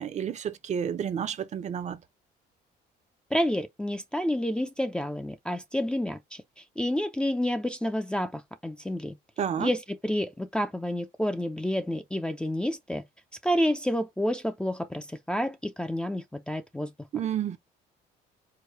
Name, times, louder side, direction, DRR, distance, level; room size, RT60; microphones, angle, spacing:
voice 1, 0.0-2.0 9.4-9.7 17.1-17.6, right 8 dB, 45° right, 0.7 m, -30 dB
voice 2, 3.3-6.4 6.8-9.2 9.6-13.0 13.4-16.9, equal, 5° left, 0.5 m, -29 dB
4.9 x 2.2 x 4.5 m
cardioid pair, 110°, 17 cm